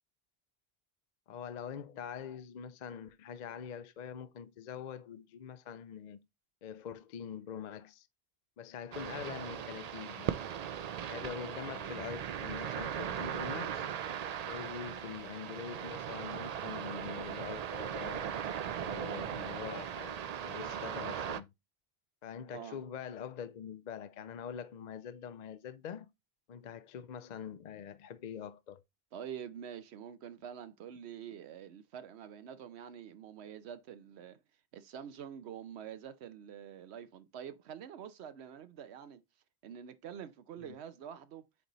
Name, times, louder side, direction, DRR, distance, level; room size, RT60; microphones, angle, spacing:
voice 1, 1.3-6.2 6.6-8.1 8.6-10.4 11.1-13.9 14.4-18.4 18.8-21.5 22.2-26.1 26.5-28.8 40.6-40.8, left 8 dB, 55° left, 0.5 m, -44 dB
sound 1, 8.9-21.4, right 8 dB, 55° right, 0.5 m, -38 dB
voice 2, 29.1-34.4 34.7-39.2 39.6-41.4, right 8 dB, 85° right, 0.9 m, -46 dB
8.2 x 4.0 x 3.0 m
omnidirectional pair, 1.1 m